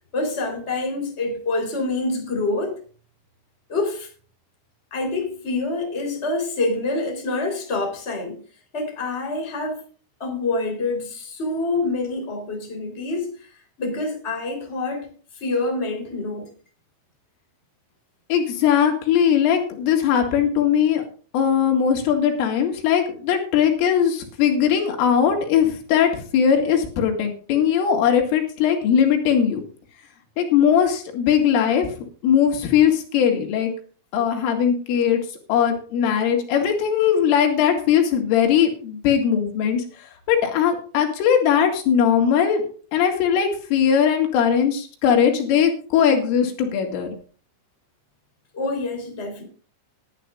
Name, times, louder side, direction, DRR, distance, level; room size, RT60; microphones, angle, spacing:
voice 1, 0.1-2.8 3.7-4.1 4.9-8.4 8.7-9.8 10.2-13.5 13.8-15.1 15.3-16.5 48.5-49.4, left 2 dB, 15° left, 3.4 m, -26 dB
voice 2, 18.3-21.0 21.3-29.6 30.4-31.9 32.2-33.7 34.1-35.2 35.5-39.8 40.3-42.6 42.9-47.2, left 8 dB, 85° left, 4.5 m, -19 dB
19.5 x 11.5 x 2.5 m
omnidirectional pair, 5.7 m